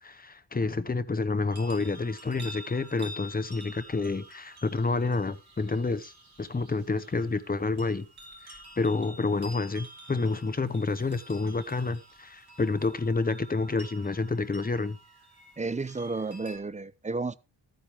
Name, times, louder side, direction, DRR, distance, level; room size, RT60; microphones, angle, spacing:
voice 1, 0.0-6.1 6.4-8.1 8.4-15.0, left 3 dB, 20° left, 0.7 m, -29 dB
sound 1, 1.5-16.6, equal, 55° right, 4.4 m, -49 dB
voice 2, 15.6-17.4, right 3 dB, 15° right, 0.5 m, -32 dB
13.0 x 9.2 x 3.4 m
wide cardioid pair, 130°, 46 cm